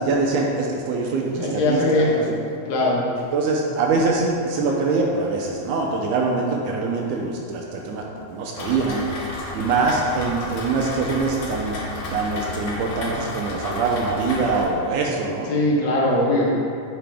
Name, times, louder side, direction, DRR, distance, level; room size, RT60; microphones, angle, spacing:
voice 1, 0.0-2.1 3.3-8.0 8.3-9.0 9.5-11.8 12.1-15.5, right 3 dB, 80° right, 0 dB, 1.9 m, -23 dB
voice 2, 1.4-2.3 2.7-3.1 15.5-16.5, left 1 dB, 85° left, -4 dB, 3.1 m, -20 dB
Rain, 8.6-14.7, left 2 dB, 65° left, 1.5 m, -32 dB
9.0 x 5.8 x 3.5 m, 2.6 s
omnidirectional pair, 4.0 m